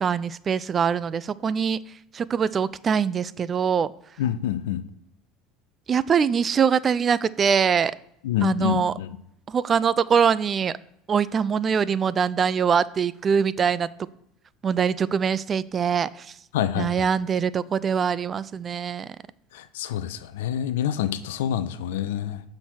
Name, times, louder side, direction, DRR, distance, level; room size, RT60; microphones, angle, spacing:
voice 1, 0.0-3.9 5.9-8.0 8.4-8.9 9.5-10.7 11.1-13.9 14.6-16.4 16.8-19.2, right 7 dB, 35° right, 18 dB, 0.3 m, -23 dB
voice 2, 4.2-4.8 8.2-9.1 16.5-17.1 19.5-22.4, left 10 dB, 70° left, 13 dB, 0.4 m, -27 dB
5.9 x 3.9 x 6.1 m, 0.77 s
hypercardioid pair, 70°, 0 cm